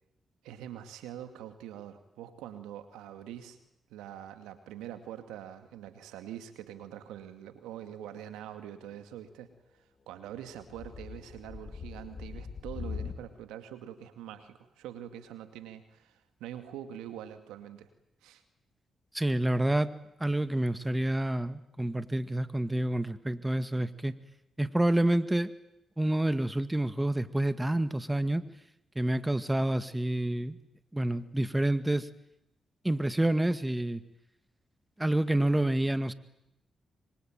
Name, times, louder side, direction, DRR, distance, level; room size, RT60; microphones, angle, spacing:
voice 1, 0.4-3.6 3.9-9.5 10.1-17.9 18.2-18.4, right 10 dB, 90° right, 8 dB, 2.3 m, -44 dB
sound 1, 10.4-13.3, left 5 dB, 55° left, 4.0 m, -41 dB
voice 2, 19.1-19.9 20.2-24.1 24.6-25.5 26.0-28.4 29.0-30.6 30.9-32.1 32.8-34.0 35.0-36.1, right 1 dB, 15° right, 12 dB, 1.9 m, -28 dB
25.0 x 24.5 x 9.2 m, 0.83 s
supercardioid pair, 50°, 0 cm